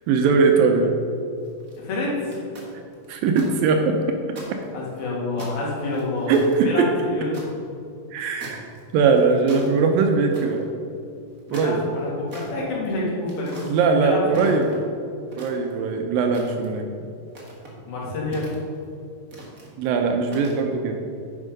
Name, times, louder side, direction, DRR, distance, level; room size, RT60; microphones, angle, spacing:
voice 1, 0.1-0.9 3.1-4.0 4.5-4.6 6.3-6.9 8.1-8.6 8.9-10.7 11.5-11.8 13.7-14.8 15.4-16.9 19.8-21.0, right 5 dB, 80° right, 4 dB, 2.3 m, -20 dB
sound 1, 1.4-1.8 2.3-3.5 3.8-3.9 4.3-5.0 5.4-7.5 8.4-8.8 9.1-9.7 10.3-10.6 11.3-12.5 13.3-13.7 14.3-14.9 15.3-15.9 16.3-16.8 17.3-17.7 18.3-18.9 19.3-19.7 20.3-20.6, right 2 dB, 50° right, 1.0 m, -41 dB
voice 2, 1.8-2.4 4.7-6.3 6.6-7.4 11.5-13.6 14.0-14.6 17.8-18.5, left 2 dB, 85° left, -5 dB, 3.9 m, -28 dB
10.0 x 5.4 x 5.2 m, 2.5 s
omnidirectional pair, 4.2 m